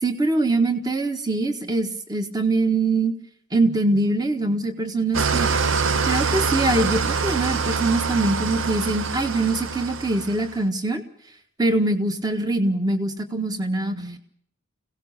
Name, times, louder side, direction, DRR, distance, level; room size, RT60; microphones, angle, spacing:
voice 1, 0.0-3.2 3.5-5.5 6.1-11.0 11.6-14.2, right 2 dB, 20° right, 7 dB, 1.5 m, -23 dB
Engine starting / Idling, 5.1-10.6, right 5 dB, 70° right, 0.9 m, -25 dB
25.5 x 17.5 x 6.7 m, 0.64 s
head